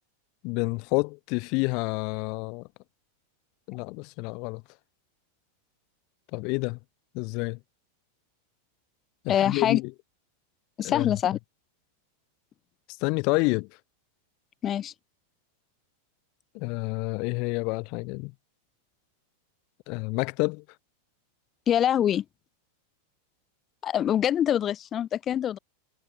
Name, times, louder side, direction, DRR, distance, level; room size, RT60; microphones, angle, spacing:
voice 1, 0.4-2.7 3.7-4.6 6.3-6.8 7.1-7.6 9.2-9.9 10.8-11.2 13.0-13.7 16.5-18.3 19.9-20.6, left 30 dB, 45° left, 2.1 m, -28 dB
voice 2, 9.3-9.8 10.8-11.4 14.6-14.9 21.7-22.2 23.8-25.6, left 10 dB, 25° left, 4.9 m, -24 dB
figure-of-eight pair, 90°, 0 cm